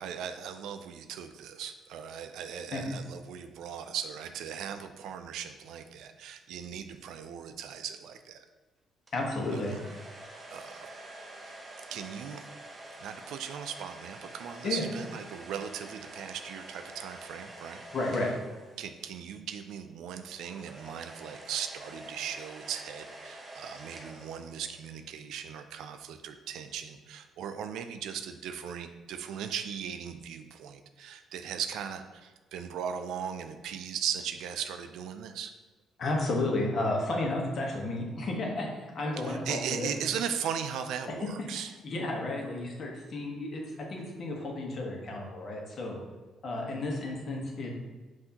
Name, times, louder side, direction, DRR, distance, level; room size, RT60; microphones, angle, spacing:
voice 1, 0.0-8.5 9.5-9.8 10.5-10.9 11.4-11.5 11.9-12.5 13.0-17.8 18.2-18.3 18.8-35.5 39.1-41.7, right 8 dB, 80° right, 8 dB, 0.3 m, -38 dB
voice 2, 9.1-9.8 14.6-14.8 17.9-18.3 36.0-39.9 41.8-43.6 43.9-46.0 46.4-47.7, left 2 dB, 55° left, 0 dB, 1.0 m, -32 dB
sound 1, 9.1-19.2 20.2-25.0, right 1 dB, 25° right, 0.9 m, -47 dB
5.5 x 2.7 x 2.8 m, 1.2 s
cardioid pair, 80°, 0 cm